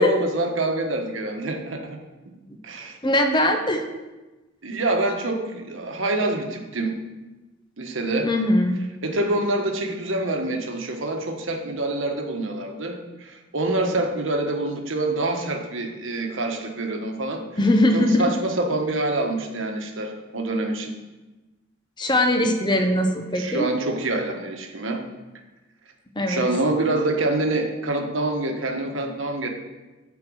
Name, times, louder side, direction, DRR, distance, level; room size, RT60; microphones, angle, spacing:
voice 1, 0.0-2.0 2.6-3.0 4.6-7.0 7.8-8.3 9.0-17.4 17.9-20.9 23.3-25.0 26.3-29.5, right 2 dB, 75° right, 3 dB, 1.3 m, -26 dB
voice 2, 3.0-3.8 8.2-8.8 17.6-18.3 22.0-23.7 26.2-26.4, left 1 dB, 20° left, 5 dB, 0.8 m, -20 dB
11.0 x 4.5 x 6.3 m, 1.1 s
head